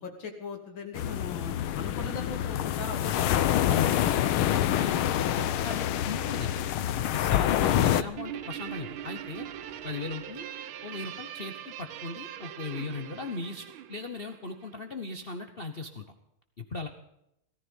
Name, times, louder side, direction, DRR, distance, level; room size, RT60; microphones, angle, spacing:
voice 1, 0.0-3.4 7.4-8.0, left 4 dB, 65° left, 2 dB, 3.3 m, -39 dB
sound 1, 1.0-8.0, left 11 dB, 90° left, 1.6 m, -26 dB
voice 2, 3.7-4.2 4.5-6.6 7.1-9.5 9.8-10.5 10.8-16.1 16.6-16.9, left 3 dB, 35° left, 5 dB, 1.0 m, -37 dB
sound 2, 3.8-10.3, right 1 dB, 55° right, 5.0 m, -53 dB
Guitar, 8.2-14.9, right 11 dB, 75° right, 1.6 m, -41 dB
18.5 x 13.5 x 5.4 m, 0.78 s
omnidirectional pair, 2.3 m